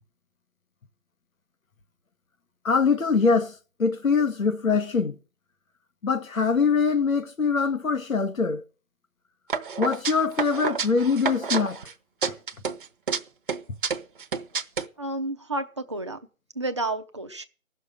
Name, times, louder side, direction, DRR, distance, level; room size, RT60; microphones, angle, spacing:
voice 1, 2.6-5.2 6.0-8.6 9.8-11.8, left 5 dB, 90° left, 1.7 m, -23 dB
sound 1, 9.5-11.9 12.2-13.2 13.5-14.8, right 5 dB, 40° right, 0.9 m, -29 dB
voice 2, 15.0-16.2 16.6-17.5, right 2 dB, 25° right, 0.6 m, -30 dB
15.5 x 6.5 x 8.6 m
hypercardioid pair, 165°, 39 cm